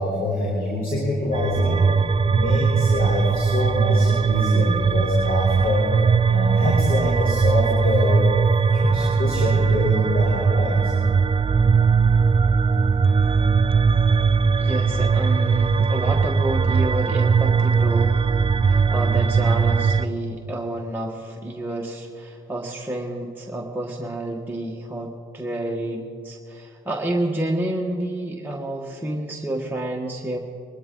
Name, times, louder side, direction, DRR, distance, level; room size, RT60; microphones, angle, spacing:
voice 1, 0.0-1.8 2.3-5.9 6.3-8.3 8.7-10.9, left 1 dB, 45° left, -3 dB, 3.8 m, -25 dB
sound 1, 1.3-20.1, right 5 dB, 25° right, 0.4 m, -19 dB
voice 2, 14.6-18.2 18.7-30.4, right 1 dB, 10° right, -2 dB, 1.4 m, -29 dB
23.0 x 12.5 x 3.8 m, 2.4 s
supercardioid pair, 65°, 21 cm